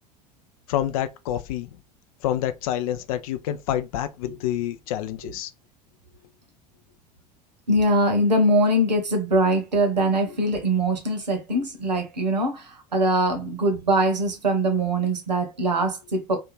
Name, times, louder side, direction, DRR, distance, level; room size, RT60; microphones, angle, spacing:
voice 1, 0.7-1.7 2.2-5.5, left 11 dB, 60° left, 0.4 m, -27 dB
voice 2, 7.7-16.4, right 1 dB, 85° right, 0.8 m, -22 dB
2.5 x 2.3 x 3.0 m
figure-of-eight pair, 75°, 21 cm